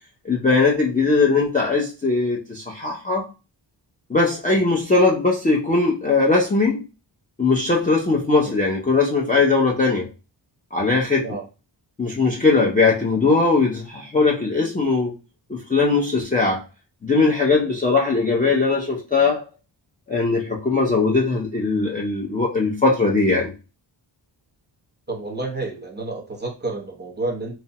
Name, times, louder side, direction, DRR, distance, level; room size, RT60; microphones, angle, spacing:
voice 1, 0.3-3.3 4.1-6.8 7.4-10.1 10.7-11.2 12.0-15.1 15.5-16.6 17.0-19.4 20.1-23.5, left 3 dB, 20° left, 0.3 m, -20 dB
voice 2, 25.1-27.6, right 2 dB, 25° right, 0.6 m, -30 dB
2.9 x 2.0 x 2.7 m
wide cardioid pair, 145°, 45 cm